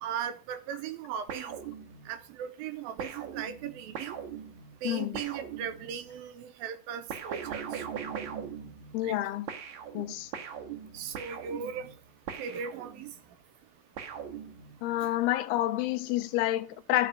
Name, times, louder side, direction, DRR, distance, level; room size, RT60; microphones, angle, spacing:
voice 1, 0.0-1.6 2.1-4.2 4.8-7.8 9.0-9.2 10.9-11.9 12.4-13.1, right 8 dB, 75° right, 2.4 m, -38 dB
sound 1, 1.3-2.3 3.0-6.1 7.1-9.2 9.5-13.2 14.0-15.0, right 8 dB, 60° right, 2.3 m, -41 dB
voice 2, 4.8-5.2 8.9-9.5 9.9-10.3 14.8-17.1, left 14 dB, 80° left, 2.6 m, -29 dB
13.0 x 5.4 x 6.4 m
omnidirectional pair, 4.7 m